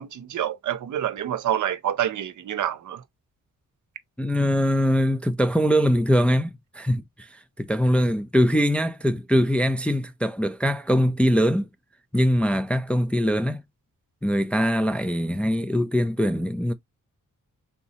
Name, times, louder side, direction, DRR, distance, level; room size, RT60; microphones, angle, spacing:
voice 1, 0.0-3.0, right 10 dB, 70° right, 0.6 m, -27 dB
voice 2, 4.2-11.7 12.1-13.6 14.2-16.7, equal, 5° left, 0.3 m, -22 dB
4.0 x 3.6 x 2.8 m
wide cardioid pair, 140°, 31 cm